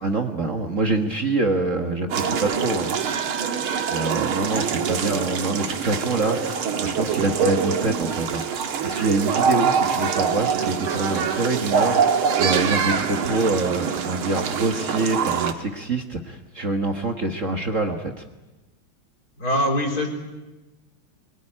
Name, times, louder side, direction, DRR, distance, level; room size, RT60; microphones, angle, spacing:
voice 1, 0.0-2.9 3.9-18.2, right 3 dB, 40° right, 4 dB, 1.7 m, -25 dB
sound 1, 2.1-15.5, right 6 dB, 85° right, 2.4 m, -24 dB
voice 2, 19.4-20.1, left 1 dB, 45° left, 2 dB, 4.5 m, -22 dB
23.5 x 22.5 x 10.0 m, 1.1 s
omnidirectional pair, 2.3 m